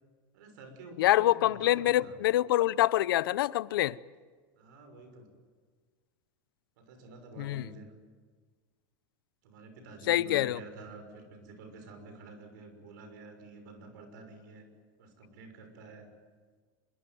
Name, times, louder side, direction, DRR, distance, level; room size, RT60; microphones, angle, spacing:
voice 1, 0.3-2.2 4.6-5.3 6.8-7.9 9.4-14.6 15.0-16.1, right 3 dB, 60° right, 6.0 m, -49 dB
voice 2, 1.0-4.0 7.4-7.6 10.1-10.6, left 14 dB, 85° left, 0.7 m, -25 dB
26.0 x 23.0 x 9.3 m
supercardioid pair, 180°, 11 cm